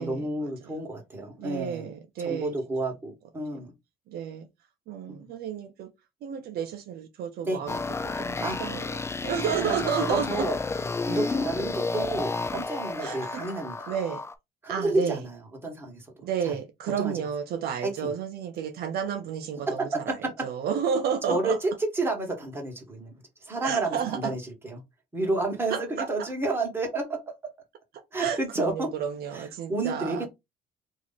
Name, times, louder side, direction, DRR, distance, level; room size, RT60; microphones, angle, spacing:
voice 1, 0.0-1.9 2.2-3.7 5.1-5.2 7.4-7.6 8.4-8.6 9.6-10.6 11.1-13.9 14.6-16.6 17.0-17.1 17.8-18.1 19.7-20.3 21.2-23.1 23.4-24.8 25.1-27.5 28.1-28.9 29.3-30.3, right 2 dB, 15° right, 1.5 m, -30 dB
voice 2, 1.4-2.5 4.1-4.5 4.9-5.9 6.2-7.8 8.0-8.8 9.2-10.5 13.0-13.4 13.9-14.2 14.7-15.2 16.2-20.1 20.4-21.6 23.6-24.2 25.7-26.1 28.2-30.3, right 7 dB, 65° right, 0.6 m, -31 dB
sound 1, 7.7-14.3, left 3 dB, 15° left, 0.4 m, -31 dB
3.0 x 2.7 x 4.0 m
cardioid pair, 110°, 17 cm